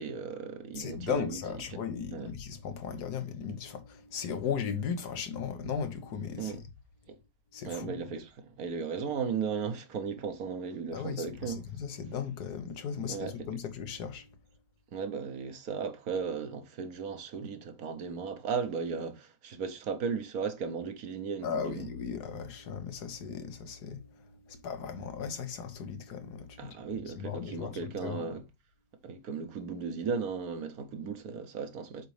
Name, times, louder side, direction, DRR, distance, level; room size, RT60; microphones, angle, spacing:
voice 1, 0.0-1.4 1.7-1.8 2.1-2.3 6.4-6.6 7.1-7.2 7.7-11.7 13.0-13.6 14.9-21.9 26.6-28.4 29.0-32.1, right 5 dB, 70° right, 1.4 m, -36 dB
voice 2, 0.7-6.6 7.5-7.9 10.9-14.3 21.4-26.8 27.2-28.4, left 6 dB, 85° left, 1.6 m, -37 dB
7.4 x 4.0 x 3.2 m
omnidirectional pair, 1.7 m